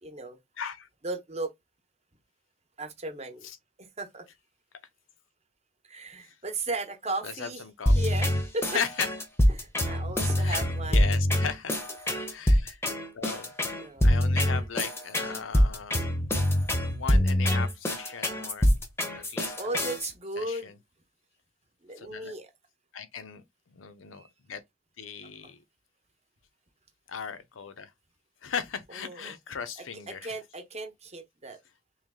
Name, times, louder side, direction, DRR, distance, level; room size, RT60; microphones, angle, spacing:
voice 1, 0.0-0.4 1.0-1.5 2.8-3.5 3.8-4.3 5.9-7.6 8.0-8.7 9.5-11.1 12.0-12.4 13.7-14.1 19.6-20.7 21.8-22.5 24.1-24.3 25.4-25.5 28.9-29.4 30.1-31.6, right 2 dB, 35° right, 0.9 m, -36 dB
voice 2, 0.6-0.9 3.4-3.6 6.2-6.3 7.2-7.9 8.7-9.1 10.4-10.6 10.9-11.8 12.3-12.8 13.1-13.5 14.0-16.1 16.9-18.7 19.2-19.9 20.4-20.7 22.0-22.3 22.9-24.6 25.0-25.6 27.1-27.9 28.4-30.3, left 7 dB, 85° left, 0.6 m, -37 dB
sound 1, 7.9-20.1, left 1 dB, 15° left, 0.7 m, -25 dB
3.2 x 3.1 x 3.6 m
head